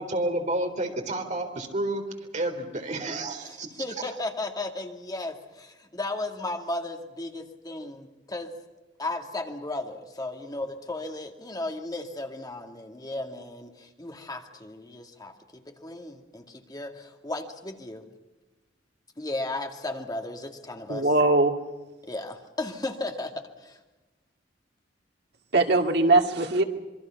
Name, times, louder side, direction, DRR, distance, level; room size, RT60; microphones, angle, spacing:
voice 1, 0.0-2.0 2.3-3.7, right 1 dB, 40° right, 4 dB, 3.8 m, -30 dB
voice 2, 3.4-8.5 9.0-18.1 19.2-21.1 22.0-23.3 23.6-23.8, left 2 dB, 20° left, 4 dB, 2.2 m, -35 dB
voice 3, 20.9-21.6 25.5-26.6, right 2 dB, 65° right, 3 dB, 2.4 m, -21 dB
26.5 x 23.0 x 5.9 m, 1.1 s
head